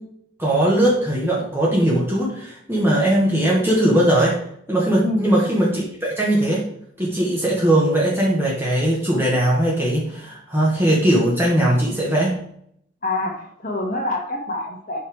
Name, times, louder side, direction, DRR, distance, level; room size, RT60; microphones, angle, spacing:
voice 1, 0.4-4.4 4.7-6.7 7.0-12.3, right 1 dB, 10° right, -5 dB, 1.8 m, -19 dB
voice 2, 13.0-15.0, left 2 dB, 45° left, 1 dB, 1.9 m, -26 dB
11.0 x 5.7 x 3.4 m, 0.68 s
head